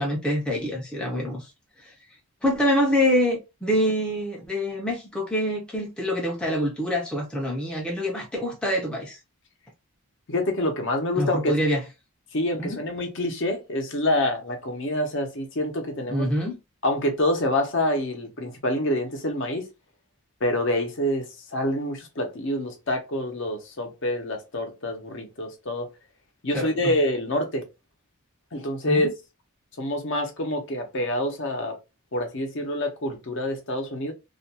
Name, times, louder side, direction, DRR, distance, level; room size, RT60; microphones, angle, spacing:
voice 1, 0.0-1.5 2.4-9.2 11.2-11.8 12.6-12.8 16.1-16.6 26.5-26.9 28.8-29.1, equal, 5° left, 0.5 m, -25 dB
voice 2, 10.3-11.5 12.3-16.3 16.8-19.7 20.4-25.9 26.4-27.6 28.5-29.1 29.8-31.8 32.1-34.1, left 1 dB, 55° left, 0.7 m, -26 dB
2.4 x 2.2 x 2.8 m
head